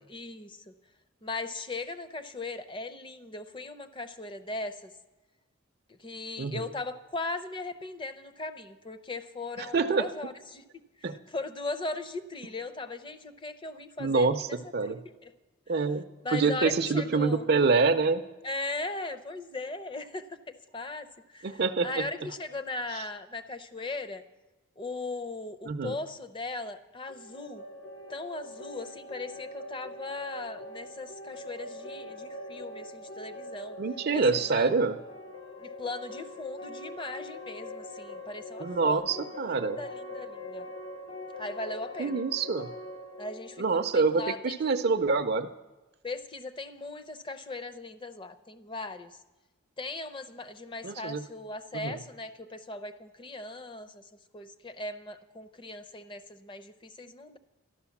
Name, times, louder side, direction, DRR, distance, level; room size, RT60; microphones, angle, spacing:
voice 1, 0.1-0.7 1.2-4.9 5.9-14.6 14.8-14.9 15.2-15.3 16.2-17.5 18.4-24.2 24.8-27.6 28.1-33.8 34.1-34.7 35.6-40.6 41.4-42.2 43.2-44.8 46.0-49.2 49.8-57.4, left 2 dB, 25° left, 12 dB, 0.6 m, -38 dB
voice 2, 6.4-6.7 9.6-10.1 11.0-11.2 14.0-15.0 15.7-16.0 16.3-18.2 21.4-22.1 22.9-23.0 25.7-26.0 33.8-35.0 38.6-39.8 42.0-42.7 43.6-45.5 50.8-51.2 51.7-52.0, right 4 dB, 50° right, 9 dB, 0.5 m, -26 dB
sound 1, 27.1-44.9, left 1 dB, 85° left, 1.5 m, -43 dB
12.5 x 11.0 x 7.1 m, 1.1 s
head